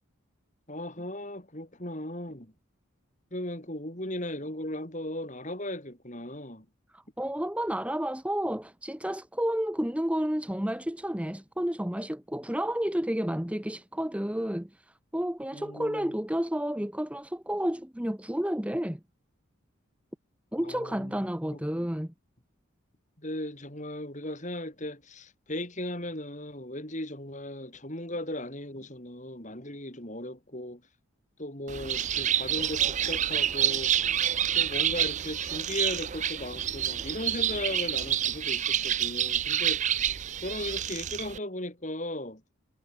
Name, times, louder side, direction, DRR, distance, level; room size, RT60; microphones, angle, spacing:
voice 1, 0.7-2.5 3.3-6.6 15.5-16.1 20.6-21.2 21.5-21.9 23.2-30.8 31.4-33.9 34.5-40.1 40.4-42.4, left 1 dB, 35° left, 5.0 m, -37 dB
voice 2, 6.9-19.0 20.5-22.1, equal, 5° right, 0.9 m, -31 dB
Bird, 31.7-41.4, right 10 dB, 35° right, 0.5 m, -28 dB
head